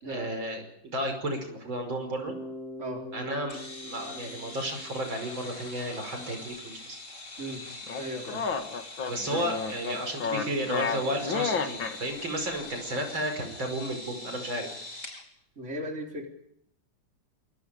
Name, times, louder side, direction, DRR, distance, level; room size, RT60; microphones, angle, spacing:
voice 1, 0.0-2.4 3.1-3.6 3.8-7.0 9.1-14.7, right 1 dB, 85° right, 5 dB, 6.2 m, -33 dB
Bass guitar, 2.3-6.2, left 1 dB, 55° right, 4.5 m, -44 dB
sound 1, 3.5-15.2, left 2 dB, 40° left, 4.2 m, -43 dB
sound 2, 7.9-12.0, left 5 dB, 85° left, 2.7 m, -31 dB
voice 2, 8.0-8.5 9.3-9.4 15.6-16.3, right 1 dB, 35° right, 1 dB, 4.2 m, -36 dB
27.0 x 23.5 x 5.1 m, 0.73 s
omnidirectional pair, 2.1 m